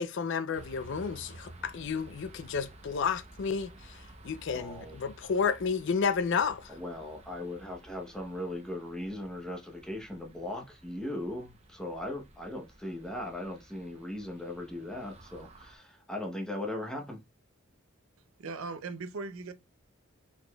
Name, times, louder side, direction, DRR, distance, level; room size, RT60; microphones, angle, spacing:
voice 1, 0.0-4.0 4.2-6.7, left 6 dB, 60° left, 0.4 m, -31 dB
sound 1, 0.5-15.8, right 1 dB, 30° right, 0.7 m, -54 dB
voice 2, 4.5-5.0 6.7-17.2, left 1 dB, 5° left, 0.9 m, -38 dB
voice 3, 18.4-19.5, right 3 dB, 70° right, 0.5 m, -38 dB
4.7 x 4.1 x 2.3 m
head